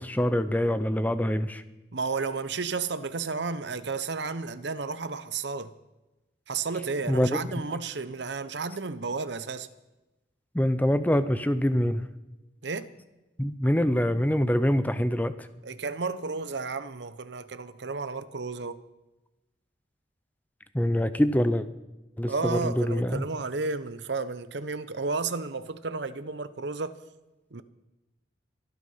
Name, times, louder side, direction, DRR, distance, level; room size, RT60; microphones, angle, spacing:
voice 1, 0.0-1.6 7.1-7.4 10.5-12.0 13.4-15.3 20.7-21.7 22.2-23.2, equal, 10° left, 0.6 m, -25 dB
voice 2, 1.9-5.7 6.5-9.7 12.6-12.9 15.6-18.8 22.3-27.0 27.5-27.6, right 4 dB, 65° right, 0.8 m, -32 dB
23.5 x 9.4 x 5.7 m
head